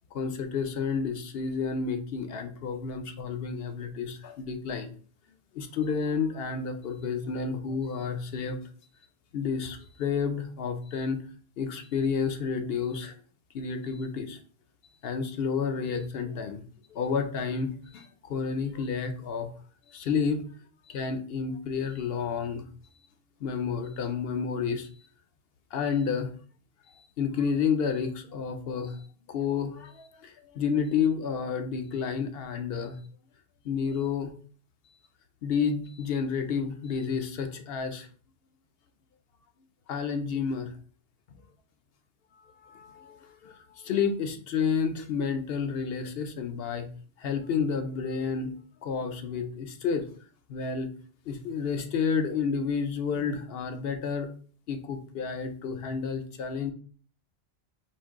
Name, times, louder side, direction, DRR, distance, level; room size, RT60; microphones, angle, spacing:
voice 1, 0.1-4.9 5.5-8.6 9.3-11.2 11.6-13.1 13.5-14.4 15.0-16.6 16.9-19.5 19.9-20.5 20.9-22.7 23.4-25.1 25.7-26.3 26.9-33.0 33.6-34.3 35.4-38.1 39.9-40.8 42.4-46.9 47.2-48.5 48.8-50.1 50.5-50.9 51.3-54.3 54.7-56.7, left 6 dB, 60° left, 8 dB, 0.8 m, -30 dB
4.5 x 2.6 x 3.6 m, 0.42 s
omnidirectional pair, 1.2 m